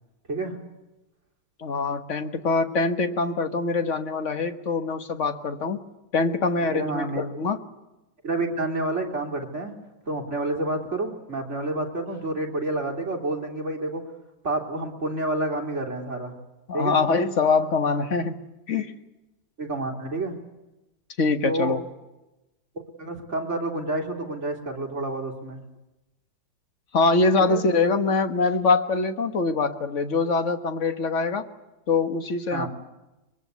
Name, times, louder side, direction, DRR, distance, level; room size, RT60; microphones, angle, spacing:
voice 1, 1.6-5.8 6.1-7.6 16.7-18.4 18.7-18.9 21.2-21.8 26.9-31.5 31.9-32.7, left 4 dB, 45° left, 8 dB, 1.6 m, -24 dB
voice 2, 6.7-7.2 8.2-9.7 10.1-14.0 14.4-16.3 16.7-17.0 19.6-20.3 21.4-21.8 23.0-25.6 27.4-27.6 32.5-32.7, right 2 dB, 40° right, 1 dB, 3.5 m, -29 dB
24.0 x 22.5 x 8.3 m, 1.0 s
omnidirectional pair, 2.0 m